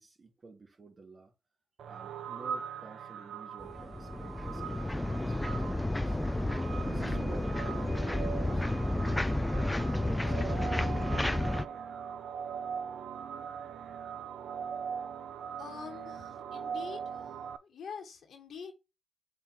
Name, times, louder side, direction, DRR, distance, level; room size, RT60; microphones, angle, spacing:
voice 1, 0.0-1.3 1.8-6.2 6.8-11.0, right 3 dB, 40° right, 3.0 m, -52 dB
sound 1, 1.8-17.6, right 7 dB, 75° right, 0.5 m, -41 dB
sound 2, 3.6-11.6, left 1 dB, 15° left, 0.6 m, -31 dB
voice 2, 15.6-17.3 17.7-18.7, left 6 dB, 75° left, 1.6 m, -45 dB
7.4 x 2.8 x 4.7 m
supercardioid pair, 50°, 0 cm